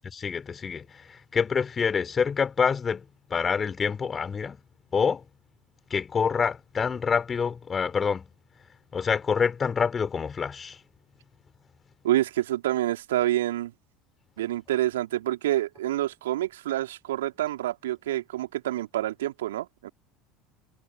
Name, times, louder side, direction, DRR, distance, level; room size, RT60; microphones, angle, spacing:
voice 1, 0.1-3.0 3.3-4.6 4.9-5.2 5.9-8.3 8.9-10.8, left 6 dB, 25° left, 3.7 m, -26 dB
voice 2, 12.0-13.7 14.4-19.9, right 14 dB, 70° right, 3.3 m, -27 dB
figure-of-eight pair, 70°, 0 cm